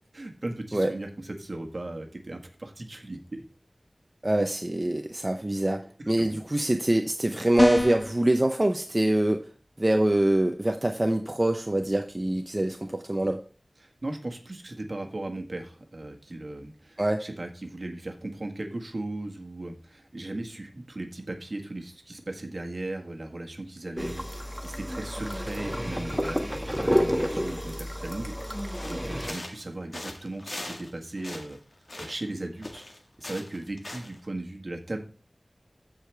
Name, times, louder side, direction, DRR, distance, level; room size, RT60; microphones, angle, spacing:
voice 1, 0.1-3.4 6.2-6.4 13.8-28.3 28.8-31.6 32.0-32.8 33.2-35.0, right 2 dB, 60° right, 3 dB, 1.8 m, -37 dB
voice 2, 4.2-5.8 6.1-9.4 9.8-13.4 17.0-17.2, right 1 dB, 35° right, 4 dB, 0.8 m, -24 dB
sound 1, 7.6-8.1, left 1 dB, 35° left, 1.5 m, -24 dB
sound 2, 24.0-29.3, equal, ahead, 1.2 m, -30 dB
sound 3, 28.7-29.7 29.9-30.9 31.2-32.3 32.6-34.2, left 2 dB, 65° left, 1.6 m, -40 dB
14.5 x 5.0 x 3.4 m, 0.38 s
wide cardioid pair, 45°, 0 cm